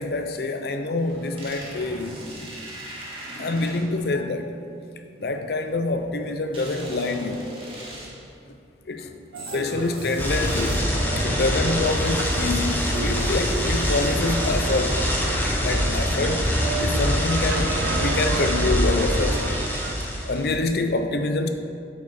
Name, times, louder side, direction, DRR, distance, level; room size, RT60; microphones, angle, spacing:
voice 1, 0.0-2.3 3.4-4.5 5.2-7.5 8.9-9.1 9.5-10.8 11.2-15.0 15.6-19.4 19.8-19.9 20.3-21.5, left 3 dB, 55° left, 7 dB, 0.5 m, -26 dB
sound 1, 1.0-4.1 6.5-8.4 9.3-11.1, right 1 dB, 30° right, 1.4 m, -38 dB
sound 2, 9.3-20.0, right 6 dB, 85° right, 0.3 m, -35 dB
sound 3, 10.2-20.5, equal, 10° left, 0.8 m, -24 dB
8.4 x 5.0 x 4.2 m, 2.5 s
head